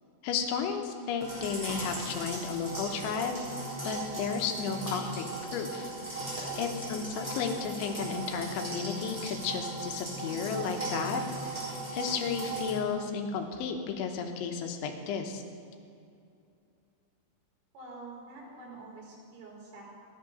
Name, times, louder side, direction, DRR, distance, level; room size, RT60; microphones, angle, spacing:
voice 1, 0.2-3.3 3.8-5.3 5.5-6.2 6.6-15.4, left 6 dB, 90° left, 4 dB, 3.4 m, -33 dB
sound 1, 1.2-12.7, right 2 dB, 10° right, 2.9 m, -38 dB
voice 2, 17.7-19.8, right 3 dB, 90° right, -5 dB, 5.4 m, -46 dB
13.0 x 9.5 x 5.2 m, 2.5 s
omnidirectional pair, 5.4 m